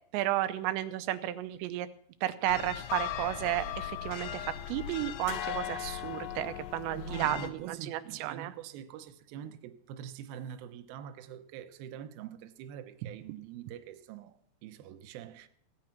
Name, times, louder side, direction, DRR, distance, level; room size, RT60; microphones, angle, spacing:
voice 1, 0.1-1.9 2.2-8.5, right 14 dB, 90° right, 2.9 m, -33 dB
sound 1, 2.5-7.5, left 10 dB, 80° left, 2.9 m, -38 dB
voice 2, 7.0-15.5, right 9 dB, 75° right, 2.4 m, -45 dB
16.0 x 8.8 x 5.8 m
omnidirectional pair, 5.0 m